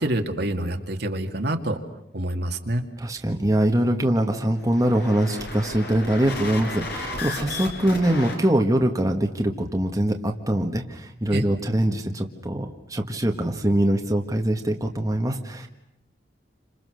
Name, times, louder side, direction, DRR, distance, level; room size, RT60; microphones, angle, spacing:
voice 1, 0.0-1.8 2.1-2.8 11.3-11.4, right 1 dB, 60° right, 4 dB, 2.2 m, -26 dB
voice 2, 3.0-15.7, right 1 dB, 20° right, 2 dB, 1.7 m, -23 dB
sound 1, 4.6-8.4, left 2 dB, 65° left, 4.9 m, -34 dB
29.5 x 26.5 x 6.6 m, 0.79 s
head